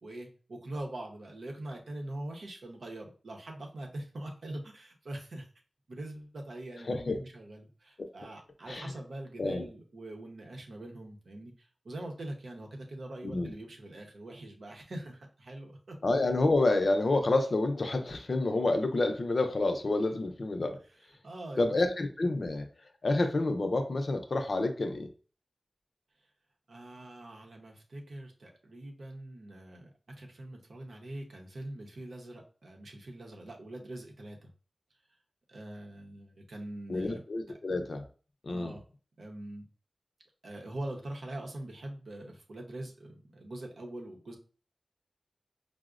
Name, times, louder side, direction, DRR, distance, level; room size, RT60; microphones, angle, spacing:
voice 1, 0.0-5.5 5.9-16.0 21.2-21.7 26.7-34.5 35.5-37.2 38.5-38.8 39.2-39.6 40.4-44.4, right 1 dB, 85° right, 1 dB, 0.7 m, -43 dB
voice 2, 16.0-20.8 21.6-22.7 23.0-25.1 36.9-38.0 38.4-38.7, left 2 dB, 60° left, 6 dB, 0.5 m, -28 dB
4.8 x 2.0 x 2.4 m, 0.38 s
wide cardioid pair, 80°, 0 cm